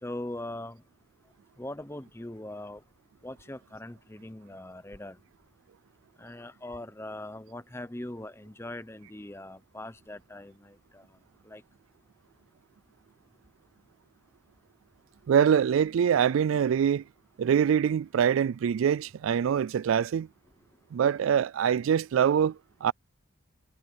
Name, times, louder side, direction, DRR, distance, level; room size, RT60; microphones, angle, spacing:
voice 1, 0.0-0.8 1.6-2.8 3.2-5.2 6.2-11.0 11.5-11.6, left 1 dB, 10° left, 0.8 m, -41 dB
voice 2, 15.3-17.0 17.4-20.3 20.9-22.9, right 8 dB, 80° right, 0.3 m, -24 dB
head